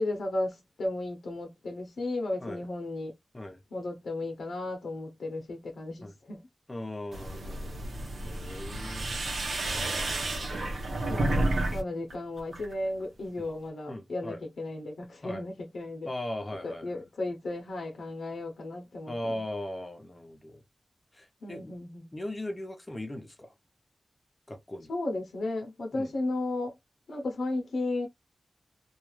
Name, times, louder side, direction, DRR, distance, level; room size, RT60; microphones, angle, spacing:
voice 1, 0.0-3.1 3.7-6.4 11.1-11.3 11.7-16.1 16.6-19.4 21.4-22.1 24.9-26.7 27.1-28.1, left 2 dB, 80° left, 0.7 m, -34 dB
voice 2, 6.7-7.9 8.2-9.2 13.4-13.5 13.9-14.4 15.2-15.4 16.1-17.0 19.1-20.6 21.1-21.7 22.1-23.5 24.5-24.9 25.9-26.1, left 1 dB, 25° left, 0.7 m, -38 dB
sound 1, 7.1-11.8 12.1-12.7, right 2 dB, 75° right, 0.9 m, -31 dB
2.4 x 2.3 x 3.0 m
wide cardioid pair, 80°, 0 cm